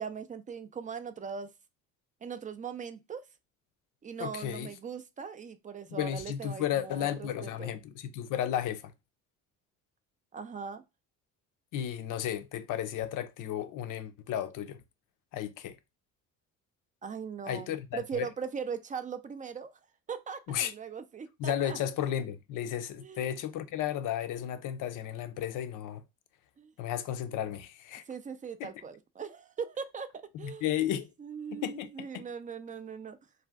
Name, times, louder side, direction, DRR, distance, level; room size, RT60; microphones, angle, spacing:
voice 1, 0.0-1.5 2.2-3.2 4.0-7.8 10.3-10.8 17.0-19.7 20.1-21.8 23.0-23.2 26.6-26.7 28.1-30.1 30.4-30.7 31.2-33.2, right 6 dB, 25° right, 0.3 m, -40 dB
voice 2, 4.2-4.7 5.9-8.9 11.7-14.8 15.3-15.8 17.5-18.3 20.5-20.7 21.4-26.0 26.8-28.0 28.6-28.7 30.4-31.1 31.5-31.9 32.1-32.2, left 10 dB, 60° left, 0.5 m, -33 dB
2.5 x 2.2 x 3.3 m
supercardioid pair, 80°, 35 cm